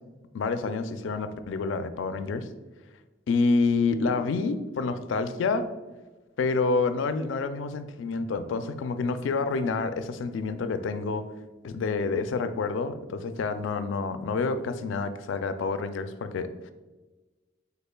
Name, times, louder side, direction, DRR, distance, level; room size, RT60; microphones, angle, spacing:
voice 1, 0.3-2.5 3.3-5.7 6.4-11.3 11.6-16.7, left 4 dB, 80° left, 11 dB, 0.3 m, -28 dB
5.4 x 4.0 x 2.2 m, 1.2 s
head